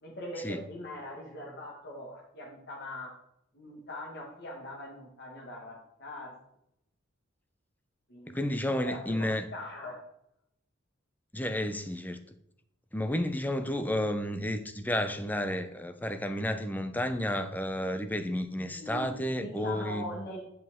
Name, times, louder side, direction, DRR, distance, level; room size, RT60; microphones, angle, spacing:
voice 1, 0.0-3.1 3.5-6.3 8.1-10.0 18.7-20.4, left 1 dB, 55° left, -2 dB, 1.7 m, -41 dB
voice 2, 8.3-9.4 11.3-12.2 12.9-20.1, left 1 dB, 10° left, 8 dB, 0.6 m, -31 dB
9.9 x 5.6 x 3.7 m, 0.77 s
head